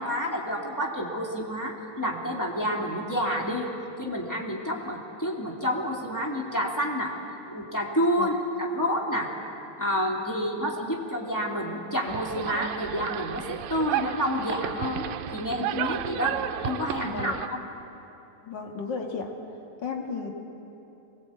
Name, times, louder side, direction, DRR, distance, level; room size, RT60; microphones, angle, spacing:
voice 1, 0.0-3.7 4.0-7.1 7.5-9.3 9.8-15.1 15.3-16.4 16.6-17.6, equal, 5° left, -2 dB, 2.0 m, -29 dB
sound 1, 12.1-17.5, right 12 dB, 80° right, 2.3 m, -33 dB
voice 2, 17.0-17.4 18.4-19.3 19.8-20.3, left 5 dB, 35° left, 1 dB, 2.2 m, -33 dB
24.0 x 20.0 x 8.5 m, 2.9 s
omnidirectional pair, 4.1 m